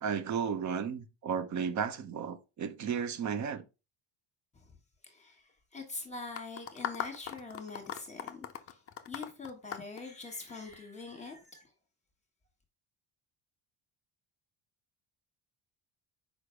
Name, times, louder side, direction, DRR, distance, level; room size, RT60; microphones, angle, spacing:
voice 1, 0.0-3.6, right 7 dB, 35° right, 0.6 m, -34 dB
voice 2, 5.0-11.7, left 3 dB, 15° left, 1.4 m, -44 dB
sound 1, 6.4-10.8, left 9 dB, 30° left, 0.4 m, -39 dB
6.3 x 5.1 x 3.2 m
cardioid pair, 170°, 50 cm